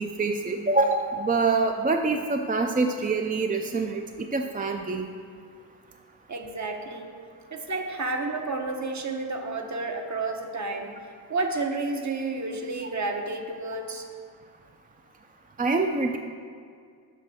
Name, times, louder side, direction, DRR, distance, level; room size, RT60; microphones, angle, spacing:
voice 1, 0.0-4.0 4.3-5.1 15.6-16.2, right 3 dB, 20° right, 4 dB, 0.4 m, -25 dB
voice 2, 6.3-7.1 7.5-10.9 11.3-14.1, right 3 dB, 45° right, 3 dB, 1.0 m, -31 dB
6.5 x 6.0 x 4.1 m, 2.2 s
cardioid pair, 40°, 40 cm